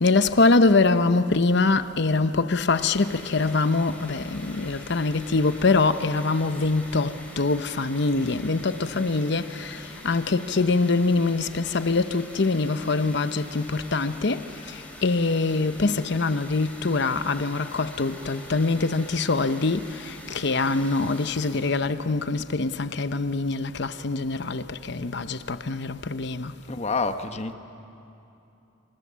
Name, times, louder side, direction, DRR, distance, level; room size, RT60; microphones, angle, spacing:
voice 1, 0.0-9.8 10.0-14.4 15.0-19.8 20.3-26.5, left 3 dB, 60° left, 0.9 m, -24 dB
sound 1, 2.7-22.1, left 1 dB, 10° left, 3.6 m, -44 dB
voice 2, 26.7-27.5, left 4 dB, 35° left, 1.1 m, -28 dB
27.5 x 26.5 x 7.5 m
head